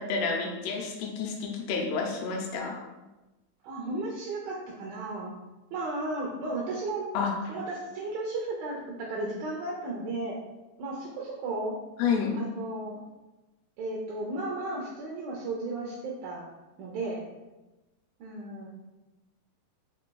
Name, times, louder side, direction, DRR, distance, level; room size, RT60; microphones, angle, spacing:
voice 1, 0.0-2.8 7.1-7.5 12.0-12.4, left 5 dB, 85° left, 1 dB, 2.7 m, -30 dB
voice 2, 3.6-5.4 5.7-7.1 7.5-10.4 10.8-11.8 12.4-13.0 13.8-16.5 16.8-17.2 18.2-18.7, right 2 dB, 80° right, -1 dB, 2.1 m, -34 dB
5.3 x 4.2 x 2.2 m, 1.1 s
omnidirectional pair, 4.7 m